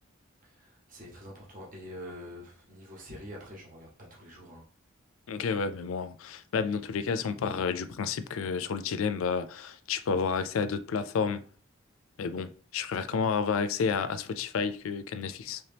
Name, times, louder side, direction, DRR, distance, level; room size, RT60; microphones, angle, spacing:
voice 1, 0.4-4.6, equal, 40° right, 1.0 m, -46 dB
voice 2, 5.3-11.4 12.2-15.6, left 5 dB, 75° left, 0.4 m, -30 dB
3.1 x 2.8 x 3.4 m
head